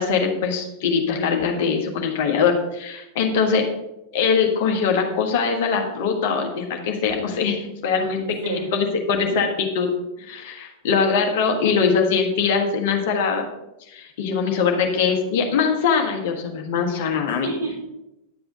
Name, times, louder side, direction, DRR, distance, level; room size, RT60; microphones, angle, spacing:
voice 1, 0.0-3.7 4.1-9.9 10.2-13.4 13.9-17.5, left 5 dB, 50° left, 2 dB, 1.4 m, -22 dB
voice 2, 7.9-8.7 9.3-9.4 17.3-17.8, right 4 dB, 65° right, -2 dB, 2.6 m, -31 dB
10.5 x 7.7 x 3.8 m, 0.92 s
figure-of-eight pair, 90°, 0 cm